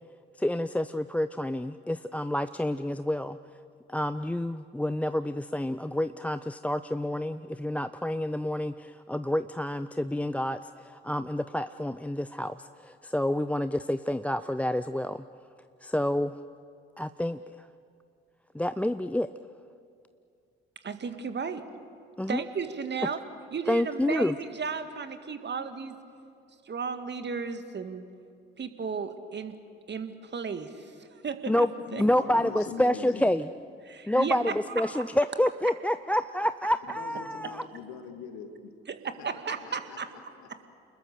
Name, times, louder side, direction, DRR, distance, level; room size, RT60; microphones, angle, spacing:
voice 1, 0.4-3.4 3.9-15.2 15.8-16.4 17.0-17.7 18.5-19.3 22.2-22.4 23.7-24.4 31.5-31.7 32.0-33.5 34.1-37.6, left 1 dB, 5° left, 13 dB, 0.5 m, -28 dB
voice 2, 20.8-21.6 22.3-23.2 23.5-25.9 26.7-28.1 28.6-29.5 29.9-31.7 31.9-32.0 33.9-34.3 34.8-35.0 38.9-40.1, right 5 dB, 35° right, 9 dB, 1.8 m, -34 dB
voice 3, 31.9-33.3 36.9-38.7 39.2-40.7, left 6 dB, 65° left, 7 dB, 2.0 m, -43 dB
29.5 x 20.5 x 6.7 m, 2.4 s
figure-of-eight pair, 45°, 31 cm